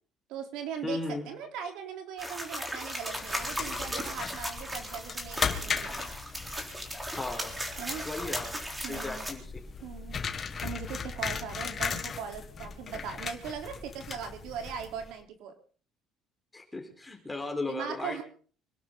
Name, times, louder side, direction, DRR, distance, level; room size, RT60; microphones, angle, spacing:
voice 1, 0.3-6.1 7.8-8.1 8.8-9.3 9.8-10.2 10.6-15.6 17.7-18.2, right 7 dB, 80° right, 5 dB, 3.6 m, -39 dB
voice 2, 0.8-1.3 7.2-7.5 8.0-8.5 8.9-9.5 16.5-18.2, left 2 dB, 10° left, 3 dB, 4.5 m, -36 dB
sound 1, 2.2-9.3, equal, 10° right, 3.7 m, -37 dB
sound 2, 3.1-15.1, left 6 dB, 30° left, 1.9 m, -37 dB
25.5 x 12.0 x 3.9 m, 0.42 s
cardioid pair, 135°, 0 cm